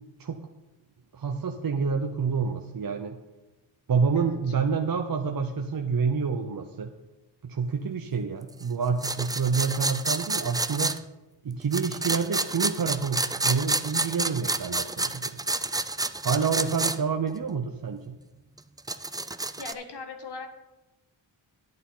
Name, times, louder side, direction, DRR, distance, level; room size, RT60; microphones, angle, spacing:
voice 1, 1.1-3.2 3.9-6.9 7.4-10.9 11.4-15.4 16.2-18.2, right 5 dB, 45° right, 3 dB, 0.8 m, -28 dB
sound 1, 9.0-11.0 11.7-17.0 17.3-17.4 18.6-19.7, right 2 dB, 10° right, 0.4 m, -29 dB
voice 2, 16.5-16.9 19.5-20.5, left 4 dB, 55° left, 5 dB, 1.6 m, -40 dB
10.5 x 8.7 x 3.8 m, 1.1 s
cardioid pair, 60°, 47 cm